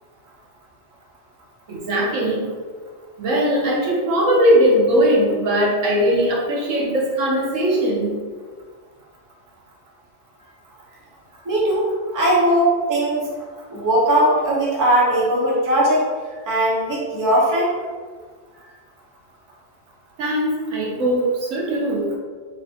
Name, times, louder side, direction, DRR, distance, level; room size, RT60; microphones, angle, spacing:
voice 1, 1.7-2.4 3.2-8.1 20.2-22.1, equal, 75° right, -3 dB, 1.1 m, -19 dB
voice 2, 11.4-13.3 13.7-16.1 16.5-17.7, right 1 dB, 20° right, -5 dB, 0.5 m, -19 dB
3.2 x 3.2 x 2.7 m, 1.5 s
omnidirectional pair, 1.3 m